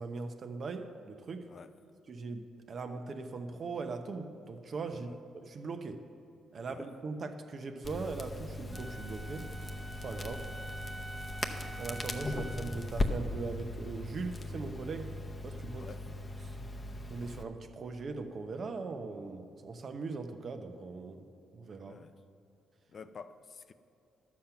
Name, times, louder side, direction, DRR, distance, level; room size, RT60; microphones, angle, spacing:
voice 1, 0.0-1.5 2.1-5.1 5.3-6.0 6.5-9.5 10.0-10.5 11.8-15.2 15.4-15.9 17.1-21.3 21.5-22.0, right 4 dB, 50° right, 0.9 m, -40 dB
Crackle, 7.8-17.4, left 2 dB, 25° left, 0.8 m, -38 dB
Wind instrument woodwind instrument, 8.7-12.9, right 1 dB, 20° right, 1.3 m, -46 dB
voice 2, 22.9-23.7, left 5 dB, 45° left, 0.4 m, -49 dB
12.0 x 7.3 x 5.9 m
cardioid pair, 90°, 0 cm